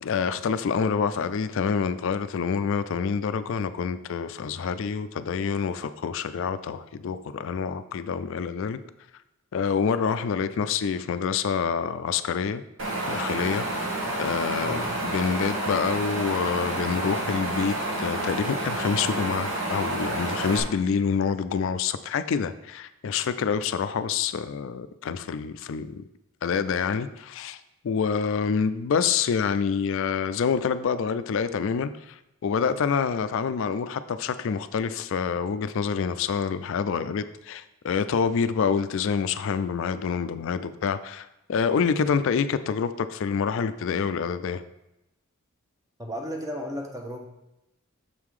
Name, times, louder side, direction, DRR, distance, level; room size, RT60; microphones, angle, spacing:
voice 1, 0.0-8.8 9.5-12.6 13.1-13.6 14.2-26.0 26.4-27.6 27.8-44.6, left 6 dB, 60° left, 12 dB, 0.3 m, -27 dB
Wind, 12.8-20.6, right 1 dB, 60° right, 1.2 m, -29 dB
voice 2, 46.0-47.3, equal, 15° right, 2 dB, 0.8 m, -34 dB
6.8 x 3.7 x 4.8 m, 0.90 s
head